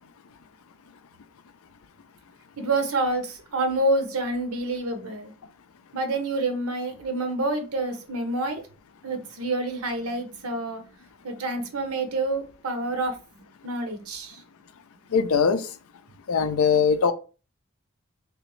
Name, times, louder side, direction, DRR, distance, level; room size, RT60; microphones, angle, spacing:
voice 1, 2.6-5.3 5.9-8.6 9.0-10.8 11.2-13.2 13.6-14.4, right 2 dB, 90° right, 0.9 m, -28 dB
voice 2, 15.1-15.7 16.3-17.1, left 6 dB, 75° left, 0.4 m, -21 dB
3.4 x 3.0 x 3.1 m
head